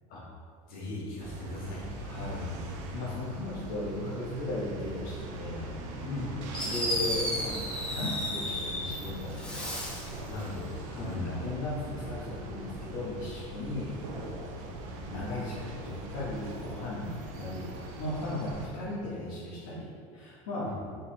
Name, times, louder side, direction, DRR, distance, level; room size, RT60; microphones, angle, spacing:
voice 1, 0.7-1.9 6.0-6.3 10.2-11.3 17.3-17.4 20.6-20.8, left 2 dB, 60° left, -5 dB, 1.2 m, -38 dB
sound 1, 1.2-18.7, right 2 dB, 75° right, 0.5 m, -41 dB
voice 2, 2.0-2.4 2.9-5.7 6.6-7.6 7.9-9.7 10.9-20.7, left 2 dB, 75° left, -8 dB, 1.0 m, -37 dB
Fireworks, 6.1-6.2 6.5-9.0 9.3-10.2, left 1 dB, 5° left, 0.9 m, -33 dB
3.9 x 3.2 x 2.7 m, 2.2 s
hypercardioid pair, 90°, 18 cm